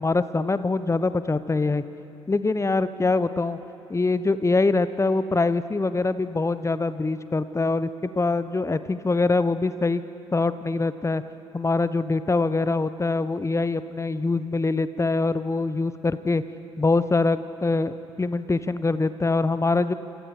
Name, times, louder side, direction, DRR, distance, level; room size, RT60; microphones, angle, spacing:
voice 1, 0.0-1.8 2.3-3.6 3.9-10.0 10.3-11.2 11.5-16.4 16.8-19.9, left 3 dB, 20° left, 13 dB, 1.1 m, -24 dB
28.5 x 27.0 x 5.1 m, 2.9 s
figure-of-eight pair, 40°, 15 cm